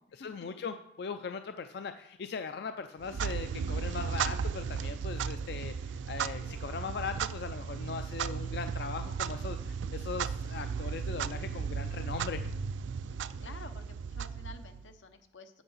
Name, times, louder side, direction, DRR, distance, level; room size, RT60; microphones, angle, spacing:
voice 1, 0.1-12.4, left 5 dB, 60° left, 8 dB, 0.4 m, -39 dB
Clock, 3.0-15.0, right 6 dB, 80° right, 0.4 m, -35 dB
voice 2, 13.1-15.6, left 3 dB, 85° left, 8 dB, 0.9 m, -50 dB
8.1 x 7.2 x 5.5 m, 0.81 s
head